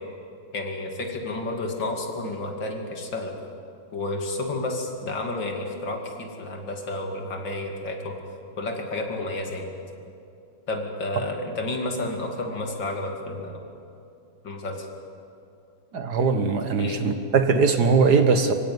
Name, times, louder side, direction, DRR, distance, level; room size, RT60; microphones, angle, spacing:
voice 1, 0.5-3.3 3.9-8.2 8.6-9.6 10.7-13.6 14.4-14.9 16.8-17.1, left 2 dB, 65° left, 2 dB, 3.1 m, -31 dB
voice 2, 15.9-18.5, right 5 dB, 55° right, 8 dB, 1.7 m, -20 dB
25.0 x 16.0 x 9.5 m, 2.6 s
omnidirectional pair, 2.2 m